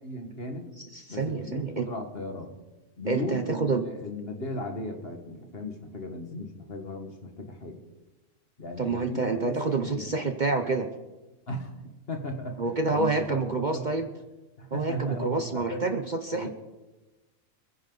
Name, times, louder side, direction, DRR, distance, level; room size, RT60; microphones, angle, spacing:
voice 1, 0.0-0.7 1.1-2.6 3.0-7.8 8.6-10.2 11.5-11.8 12.1-14.0 14.6-15.8 16.3-16.5, left 1 dB, 45° left, 4 dB, 2.0 m, -36 dB
voice 2, 1.1-1.9 3.1-3.8 8.8-10.9 12.6-14.1 14.7-16.5, right 3 dB, 40° right, 6 dB, 0.9 m, -28 dB
27.5 x 10.5 x 4.0 m, 1.1 s
omnidirectional pair, 1.4 m